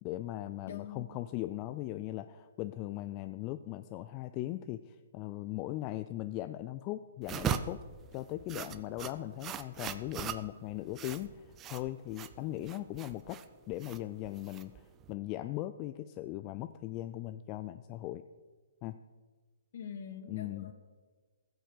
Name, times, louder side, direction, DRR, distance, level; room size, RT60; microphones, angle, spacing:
voice 1, 0.0-7.8 8.1-13.4 13.7-18.2 18.8-19.0 20.3-20.7, left 15 dB, 30° left, 11 dB, 0.4 m, -39 dB
voice 2, 0.7-1.1 19.7-20.7, left 7 dB, 55° left, 6 dB, 1.9 m, -44 dB
sound 1, 7.2-15.1, right 9 dB, 20° right, 0.6 m, -40 dB
15.5 x 6.4 x 6.7 m, 1.4 s
hypercardioid pair, 140°, 0 cm